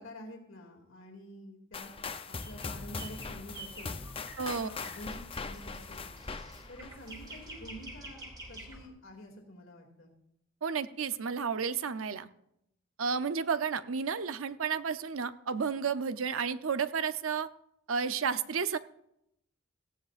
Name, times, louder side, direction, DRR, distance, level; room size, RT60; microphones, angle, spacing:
voice 1, 0.0-1.9 2.2-4.0 4.5-6.2 6.7-10.1, equal, 80° left, 1 dB, 2.5 m, -48 dB
sound 1, 1.7-7.6, left 4 dB, 25° left, 0.6 m, -41 dB
sound 2, 2.3-8.9, right 1 dB, 20° right, 2.7 m, -48 dB
voice 2, 4.4-4.7 10.6-12.3 13.0-17.5 17.9-18.8, right 6 dB, 85° right, 12 dB, 0.7 m, -32 dB
18.0 x 14.5 x 2.5 m, 0.79 s
head